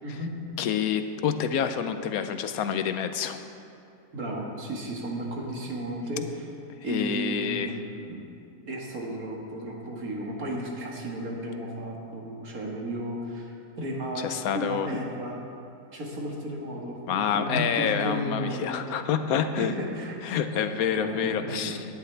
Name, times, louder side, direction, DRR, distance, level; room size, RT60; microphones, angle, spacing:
voice 1, 0.6-3.4 6.8-7.8 14.2-14.9 17.1-19.7 20.2-21.9, left 8 dB, 85° left, 9 dB, 1.2 m, -28 dB
voice 2, 4.1-6.4 6.8-8.3 8.7-15.4 15.9-18.7 19.6-20.1 21.0-21.8, right 1 dB, 85° right, -1 dB, 2.2 m, -34 dB
17.0 x 10.5 x 3.4 m, 2.6 s
omnidirectional pair, 1.5 m